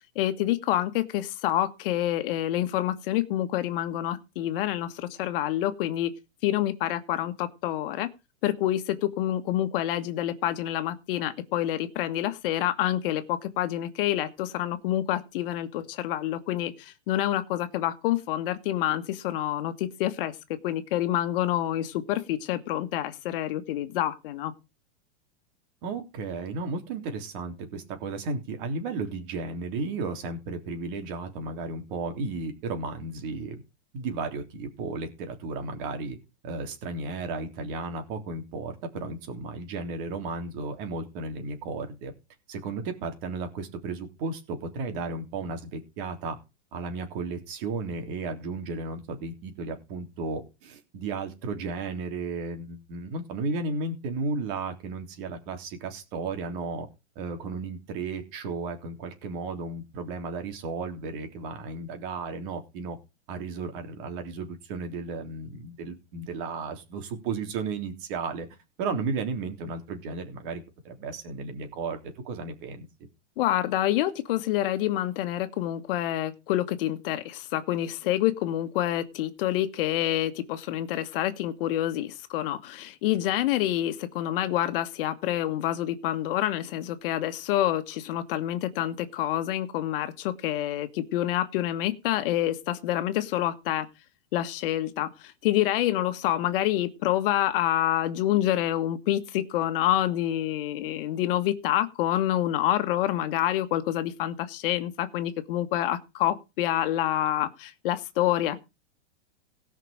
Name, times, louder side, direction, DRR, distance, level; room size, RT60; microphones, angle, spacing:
voice 1, 0.1-6.1 6.4-8.1 8.4-20.3 20.6-24.5 73.4-93.9 94.3-108.6, left 13 dB, 50° left, 1.6 m, -27 dB
voice 2, 25.8-33.6 33.9-36.2 36.4-42.1 42.5-46.4 46.7-56.9 57.1-63.0 63.3-68.5 68.8-72.8, right 4 dB, 45° right, 3.4 m, -34 dB
17.5 x 6.0 x 5.1 m
supercardioid pair, 150°, 35 cm